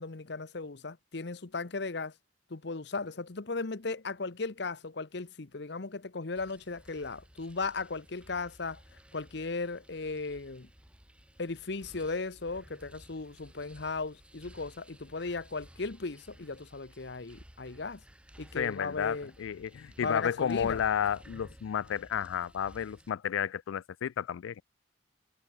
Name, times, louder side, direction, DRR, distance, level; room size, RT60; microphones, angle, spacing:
voice 1, 0.0-2.1 2.5-8.8 9.1-10.7 11.4-18.0 18.4-19.3 20.0-20.8, left 3 dB, 60° left, 0.9 m, -36 dB
sound 1, 6.3-23.1, equal, 5° right, 2.2 m, -55 dB
voice 2, 18.6-24.6, left 8 dB, 85° left, 0.3 m, -32 dB
head